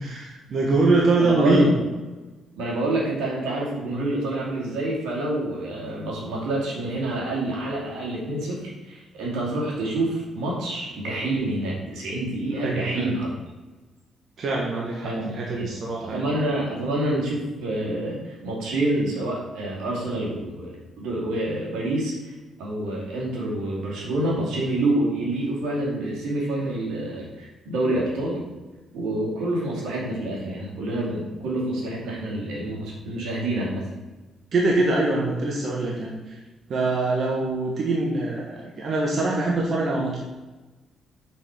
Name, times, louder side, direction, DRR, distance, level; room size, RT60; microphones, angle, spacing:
voice 1, 0.0-1.7 12.6-13.1 14.4-16.3 34.5-36.4 36.7-40.2, right 2 dB, 55° right, -2 dB, 1.4 m, -23 dB
voice 2, 1.2-1.7 2.5-13.3 15.0-15.7 16.0-28.4 28.9-33.9, right 1 dB, 85° right, -3 dB, 2.6 m, -27 dB
6.1 x 4.9 x 6.0 m, 1.2 s
cardioid pair, 90°, 0 cm